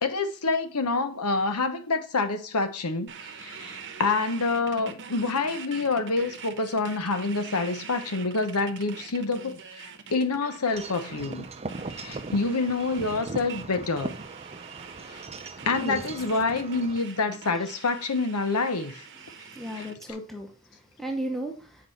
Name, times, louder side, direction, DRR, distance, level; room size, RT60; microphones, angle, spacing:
voice 1, 0.0-3.1 3.4-11.5 11.9-14.1 15.0-15.2 15.6-19.1 19.8-19.9, left 3 dB, 85° left, 1.0 m, -27 dB
sound 1, 3.1-20.1, right 6 dB, 55° right, 0.9 m, -44 dB
Wind chime / Wind, 10.7-17.0, right 3 dB, 30° right, 0.6 m, -39 dB
voice 2, 19.2-21.9, equal, ahead, 0.9 m, -35 dB
7.7 x 4.8 x 4.1 m
head